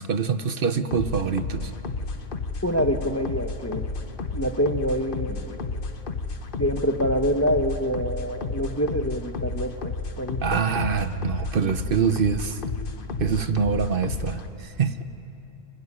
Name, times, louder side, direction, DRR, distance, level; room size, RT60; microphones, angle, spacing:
voice 1, 0.0-1.7 10.4-12.6 13.2-15.0, right 6 dB, 60° right, 10 dB, 1.1 m, -25 dB
sound 1, 0.9-14.5, left 3 dB, 55° left, 1.3 m, -32 dB
voice 2, 2.6-3.9 4.3-5.8 6.6-10.6, equal, 15° left, 7 dB, 0.9 m, -26 dB
26.0 x 19.5 x 9.8 m, 2.9 s
omnidirectional pair, 1.1 m